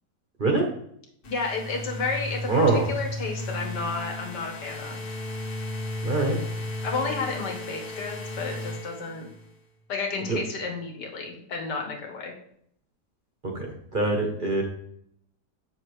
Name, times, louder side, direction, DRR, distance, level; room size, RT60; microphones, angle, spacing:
sound 1, 1.2-9.6, left 1 dB, 65° left, 1.7 m, -34 dB
voice 1, 1.3-5.0 6.8-9.3 9.9-12.3, left 4 dB, 85° left, 1 dB, 1.9 m, -32 dB
voice 2, 2.5-2.9 6.0-6.4 10.3-10.4 13.4-14.6, right 3 dB, 35° right, 1 dB, 0.9 m, -24 dB
7.6 x 6.3 x 3.2 m, 0.70 s
omnidirectional pair, 1.8 m